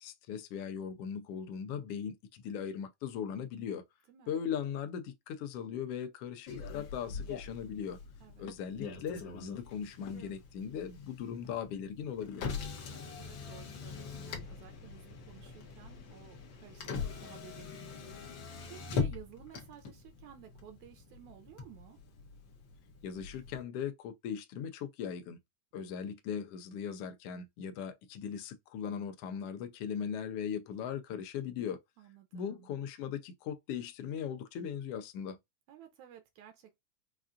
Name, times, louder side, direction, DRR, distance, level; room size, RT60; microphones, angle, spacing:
voice 1, 0.0-3.8 4.3-8.0 8.4-12.5 23.0-25.4 25.7-31.8 32.3-35.4, left 8 dB, 90° left, 1.3 m, -39 dB
Motor vehicle (road), 6.5-23.6, left 5 dB, 70° left, 1.1 m, -42 dB
voice 2, 12.9-22.0 32.0-32.7 35.7-36.8, right 11 dB, 75° right, 1.9 m, -54 dB
5.3 x 2.5 x 2.4 m
omnidirectional pair, 3.5 m